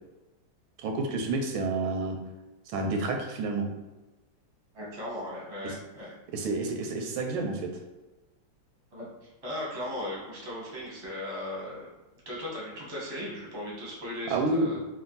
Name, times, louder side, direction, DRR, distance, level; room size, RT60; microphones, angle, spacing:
voice 1, 0.8-2.2 2.7-3.7 5.6-5.8 6.3-7.6 14.3-14.8, right 2 dB, 85° right, 3 dB, 1.4 m, -29 dB
voice 2, 4.7-6.2 8.9-11.9 12.2-14.8, left 1 dB, 20° right, -4 dB, 0.7 m, -37 dB
3.4 x 2.5 x 3.9 m, 1.1 s
omnidirectional pair, 2.2 m